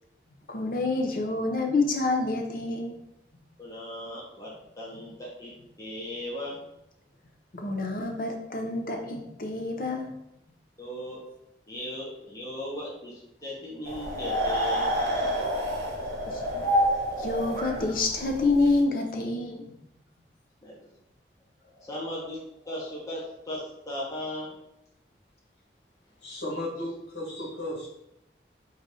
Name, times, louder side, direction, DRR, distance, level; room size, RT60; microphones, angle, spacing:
voice 1, 0.5-3.0 7.5-10.1 16.3-16.7 16.9-19.6, left 3 dB, 50° left, 2 dB, 0.6 m, -28 dB
voice 2, 3.6-4.5 4.8-5.5 5.8-6.6 10.8-11.2 11.7-14.9 20.6-20.7 21.8-24.5, equal, 20° left, -6 dB, 0.9 m, -37 dB
sound 1, 13.9-18.8, equal, 55° right, 0.9 m, -28 dB
voice 3, 26.2-27.9, left 1 dB, 90° left, -3 dB, 1.6 m, -34 dB
4.0 x 2.6 x 4.8 m, 0.81 s
head